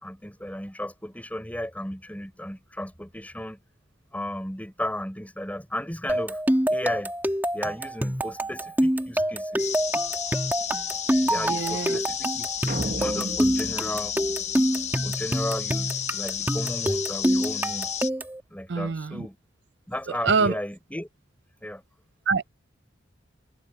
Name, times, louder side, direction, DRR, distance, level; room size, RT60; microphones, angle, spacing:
voice 1, 0.0-3.6 4.1-6.4 6.7-7.1 7.5-9.8 11.2-14.2 15.0-17.9 18.5-19.4 19.9-21.1 21.6-21.8, left 1 dB, 10° left, 4.7 m, -34 dB
sound 1, 6.1-18.4, equal, 10° right, 1.9 m, -26 dB
sound 2, 9.6-18.1, left 9 dB, 35° left, 1.0 m, -32 dB
voice 2, 11.5-12.0 18.7-19.2 20.2-20.5 22.3-22.5, right 4 dB, 60° right, 0.5 m, -24 dB
sound 3, 12.7-15.1, right 2 dB, 45° right, 1.1 m, -35 dB
head